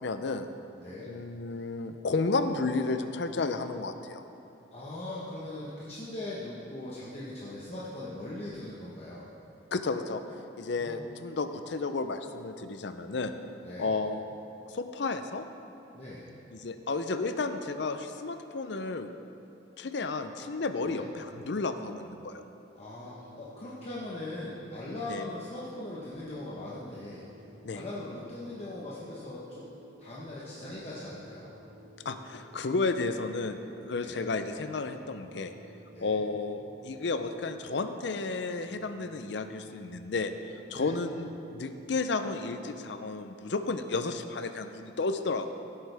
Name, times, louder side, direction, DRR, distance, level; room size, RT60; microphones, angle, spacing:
voice 1, 0.0-0.5 1.1-4.2 9.7-10.2 10.6-13.3 13.8-14.2 14.7-15.4 16.5-19.1 19.8-22.4 25.1-25.3 27.6-27.8 32.0-35.5 36.0-40.3 40.7-45.5, left 3 dB, 60° left, 9 dB, 0.5 m, -32 dB
voice 2, 0.8-1.1 4.7-9.3 10.7-11.1 13.6-13.9 15.9-16.3 20.8-21.1 22.7-27.3 27.7-29.7 30.0-31.5 34.0-34.2 35.9-36.2 40.7-40.9, left 1 dB, 35° left, -7 dB, 1.1 m, -40 dB
sound 1, 22.9-42.6, right 1 dB, 80° right, 1.8 m, -55 dB
15.5 x 8.1 x 3.4 m, 2.9 s
head